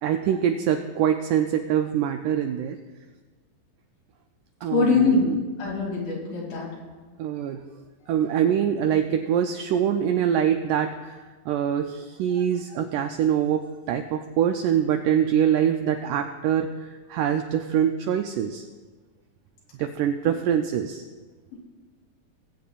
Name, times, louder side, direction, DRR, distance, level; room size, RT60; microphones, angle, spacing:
voice 1, 0.0-2.8 4.6-5.4 7.2-7.6 8.1-11.2 11.5-18.6 19.8-21.0, right 9 dB, 85° right, 6 dB, 1.8 m, -24 dB
voice 2, 4.7-5.3 5.6-6.7 21.5-21.6, left 4 dB, 80° left, -5 dB, 4.4 m, -22 dB
20.0 x 8.5 x 2.4 m, 1.4 s
omnidirectional pair, 4.1 m